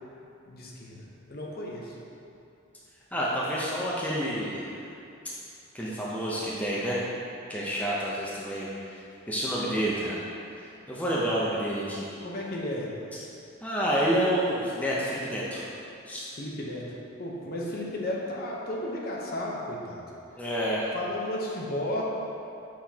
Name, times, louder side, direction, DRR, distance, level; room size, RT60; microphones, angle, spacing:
voice 1, 0.5-1.0 1.3-2.0 12.2-12.9 16.4-16.8 17.2-20.0 20.9-22.0, left 1 dB, 45° left, -3 dB, 0.8 m, -33 dB
voice 2, 3.1-4.7 5.7-7.0 7.5-10.2 10.6-12.1 13.6-15.7 16.1-16.3 20.4-20.9, equal, 5° left, -7 dB, 0.6 m, -29 dB
6.7 x 5.8 x 2.8 m, 2.7 s
head